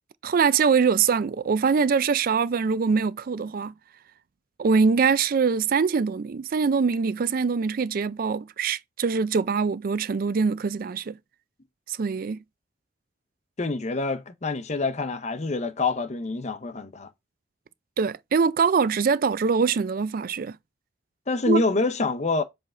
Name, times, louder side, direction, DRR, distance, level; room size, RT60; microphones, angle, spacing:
voice 1, 0.2-3.7 4.6-11.2 11.9-12.4 18.0-20.6 21.5-21.6, right 5 dB, 50° right, 0.4 m, -23 dB
voice 2, 13.6-17.1 21.3-22.4, left 3 dB, 40° left, 0.7 m, -26 dB
7.4 x 3.4 x 3.7 m
head